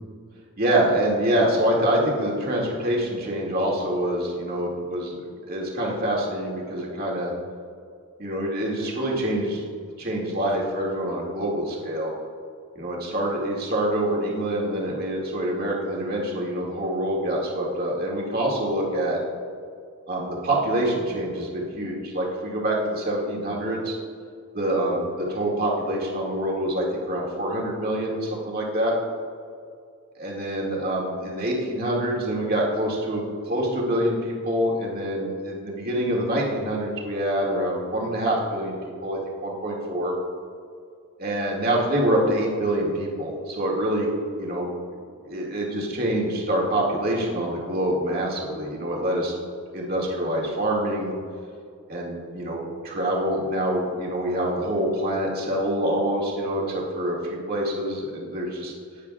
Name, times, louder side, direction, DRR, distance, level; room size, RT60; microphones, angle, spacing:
voice 1, 0.6-5.1 5.5-7.3 8.2-9.6 10.0-12.1 12.8-19.2 20.1-23.9 24.5-28.9 30.2-38.8 39.0-40.1 41.2-44.1 44.4-44.7 45.2-49.4 49.7-51.1 51.9-58.7, right 1 dB, 40° right, -3 dB, 2.1 m, -26 dB
15.5 x 10.0 x 2.4 m, 2.3 s
head